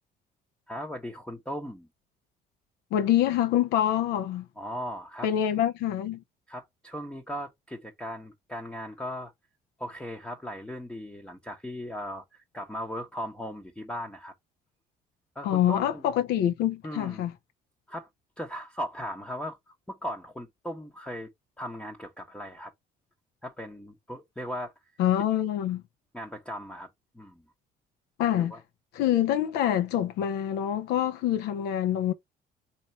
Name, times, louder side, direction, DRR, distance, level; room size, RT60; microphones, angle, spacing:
voice 1, 0.7-1.9 4.6-5.3 6.5-9.3 9.8-12.2 12.5-14.3 15.3-16.0 16.8-17.3 17.9-18.1 18.4-21.3 21.6-22.7 23.4-24.7 26.1-26.9 27.1-27.4 28.4-28.6, equal, 5° left, 0.7 m, -37 dB
voice 2, 2.9-4.5 5.2-6.2 15.4-17.3 25.0-25.8 28.2-28.5 28.9-32.1, left 11 dB, 85° left, 0.6 m, -26 dB
4.2 x 3.0 x 4.3 m
cardioid pair, 110°, 17 cm